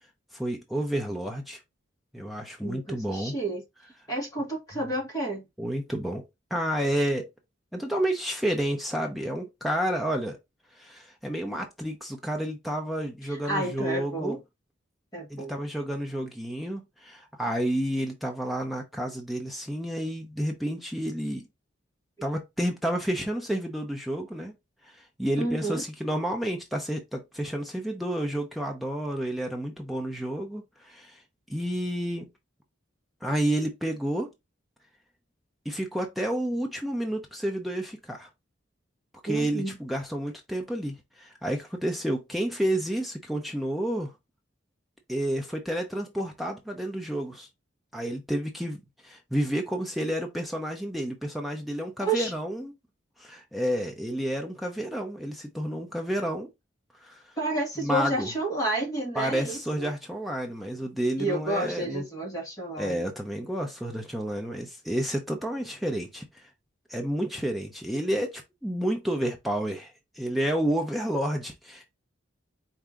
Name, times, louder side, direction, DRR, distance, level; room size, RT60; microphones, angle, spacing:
voice 1, 0.3-1.6 2.1-3.3 5.6-6.2 6.5-7.3 7.7-10.4 10.8-14.4 15.3-21.5 22.2-24.5 25.2-31.2 31.5-32.3 33.2-34.3 35.7-38.3 39.2-44.1 45.1-47.5 47.9-52.7 53.2-56.5 57.0-57.2 57.8-58.3 59.2-62.0 62.8-66.2 66.9-69.9 70.2-71.9, right 1 dB, ahead, 0.7 m, -30 dB
voice 2, 2.6-3.6 4.1-5.4 13.3-14.4 15.1-15.5 25.3-25.8 39.3-39.8 52.0-52.3 57.4-59.9 61.2-63.1, right 2 dB, 15° left, 1.6 m, -30 dB
4.6 x 2.8 x 3.6 m
head